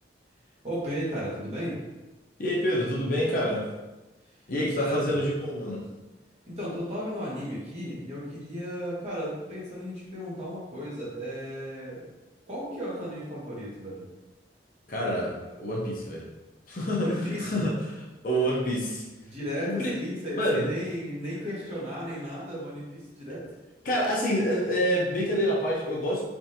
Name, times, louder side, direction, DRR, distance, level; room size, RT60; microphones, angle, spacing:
voice 1, 0.6-1.8 4.8-5.2 6.5-12.1 12.4-14.0 17.0-17.6 19.2-23.5, equal, 35° right, -7 dB, 1.1 m, -34 dB
voice 2, 2.4-3.7 4.5-5.8 14.9-16.3 16.7-19.0 19.7-19.9 20.3-20.7 23.8-26.2, equal, 50° left, -4 dB, 0.6 m, -27 dB
3.4 x 2.6 x 2.8 m, 1.1 s
head